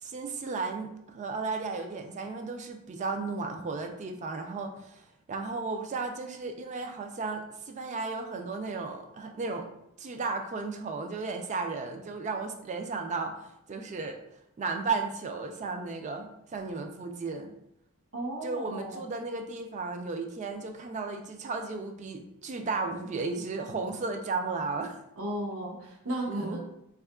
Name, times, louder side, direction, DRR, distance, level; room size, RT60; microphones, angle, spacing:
voice 1, 0.0-9.7 10.0-13.3 13.7-14.2 14.6-17.5 18.4-25.0 26.3-26.6, right 4 dB, 30° right, 5 dB, 0.3 m, -34 dB
voice 2, 18.1-19.0 25.2-26.6, right 1 dB, 65° right, 0 dB, 0.7 m, -34 dB
3.5 x 2.4 x 2.2 m, 0.81 s
head